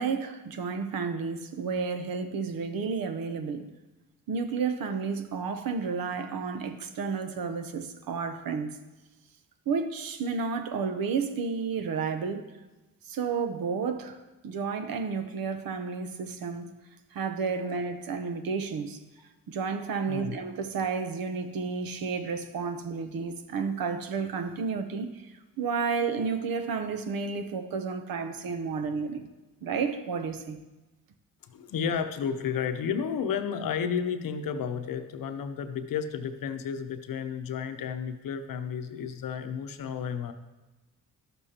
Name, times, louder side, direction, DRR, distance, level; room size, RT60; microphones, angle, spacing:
voice 1, 0.0-3.7 4.3-8.8 9.7-12.5 13.0-16.7 17.1-19.0 19.5-29.3 29.6-30.6, right 5 dB, 70° right, 0.8 m, -31 dB
voice 2, 31.5-40.3, left 7 dB, 65° left, 0.8 m, -32 dB
12.0 x 6.8 x 2.9 m
cardioid pair, 65°, 36 cm